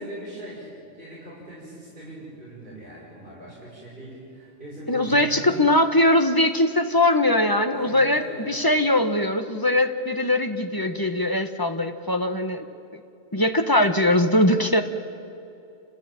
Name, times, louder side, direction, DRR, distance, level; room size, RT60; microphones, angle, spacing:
voice 1, 0.0-5.6 7.7-8.5, right 1 dB, 50° right, -8 dB, 7.1 m, -40 dB
voice 2, 4.9-12.6 13.3-14.8, left 1 dB, 20° left, 6 dB, 1.3 m, -21 dB
30.0 x 15.5 x 9.0 m, 2.7 s
omnidirectional pair, 1.1 m